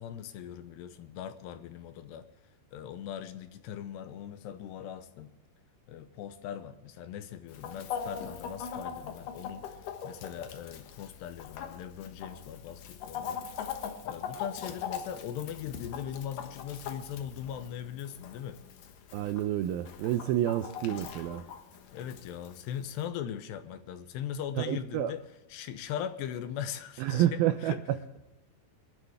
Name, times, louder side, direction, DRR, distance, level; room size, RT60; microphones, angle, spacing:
voice 1, 0.0-2.3 2.7-5.3 5.9-13.4 14.0-18.6 21.9-25.2 25.5-27.8, left 9 dB, 80° left, 2.8 m, -40 dB
Chicken rooster, 7.5-23.1, left 7 dB, 65° left, 2.4 m, -41 dB
voice 2, 19.1-21.4 24.6-25.1 27.0-28.0, right 12 dB, 90° right, 2.1 m, -29 dB
25.5 x 11.5 x 3.4 m
omnidirectional pair, 5.1 m